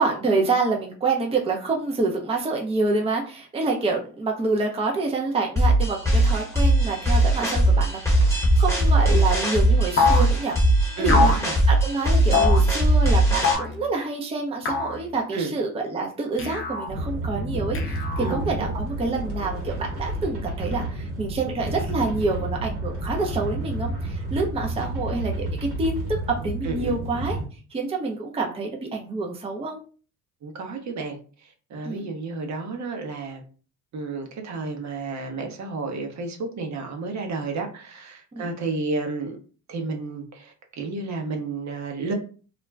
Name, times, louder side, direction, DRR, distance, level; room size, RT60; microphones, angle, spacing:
voice 1, 0.0-10.6 11.0-11.3 11.7-26.0 26.4-27.4 27.7-29.8 31.8-32.0 38.3-38.5, right 3 dB, 15° right, 0 dB, 0.6 m, -27 dB
sound 1, 5.6-13.6, right 1 dB, 10° left, 1.0 m, -20 dB
sound 2, 10.0-10.3 11.1-11.4 12.3-12.6 13.4-13.8 14.7-15.0 16.4-16.9 17.7-18.4, left 4 dB, 35° left, 0.7 m, -23 dB
voice 2, 11.0-11.6 15.3-15.5 18.2-18.7 26.6-27.0 30.4-31.2 31.7-33.4 33.9-39.4 39.7-42.1, right 3 dB, 50° right, 3 dB, 0.8 m, -31 dB
sound 3, 16.9-27.5, right 1 dB, 90° right, 1.0 m, -30 dB
2.4 x 2.1 x 3.3 m, 0.38 s
supercardioid pair, 80°, 35 cm